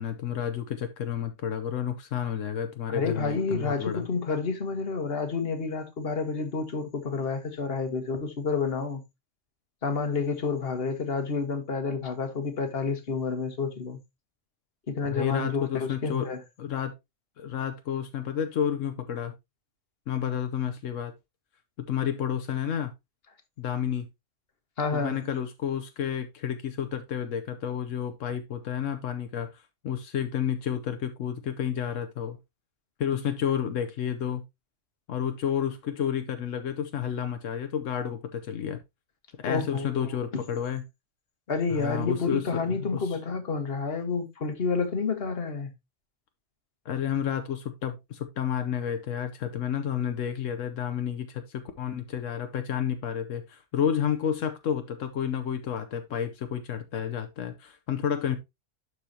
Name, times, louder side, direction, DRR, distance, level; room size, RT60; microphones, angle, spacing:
voice 1, 0.0-4.1 15.1-16.3 16.6-16.9 17.4-19.3 20.1-21.1 21.8-22.9 23.6-24.1 24.9-32.4 33.0-34.4 35.1-38.8 39.4-40.8 41.7-43.0 46.8-58.4, left 9 dB, 85° left, 1.2 m, -30 dB
voice 2, 2.9-9.0 9.8-14.0 14.9-16.4 24.8-25.2 39.5-40.1 41.5-45.7, left 4 dB, 50° left, 1.6 m, -29 dB
11.5 x 4.8 x 2.8 m
omnidirectional pair, 1.3 m